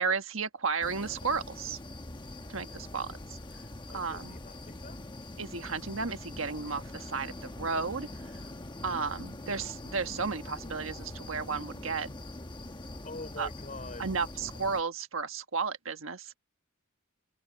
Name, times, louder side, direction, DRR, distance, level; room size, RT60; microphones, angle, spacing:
voice 1, 0.0-1.8 2.5-3.1 3.9-4.4 5.4-8.1 8.8-12.1 13.4-13.5 14.0-16.3, right 5 dB, 65° right, 1.5 m, -33 dB
sound 1, 0.8-14.8, left 1 dB, 20° left, 1.1 m, -43 dB
voice 2, 3.9-5.0 13.0-14.1, left 2 dB, 40° left, 4.8 m, -44 dB
open air
head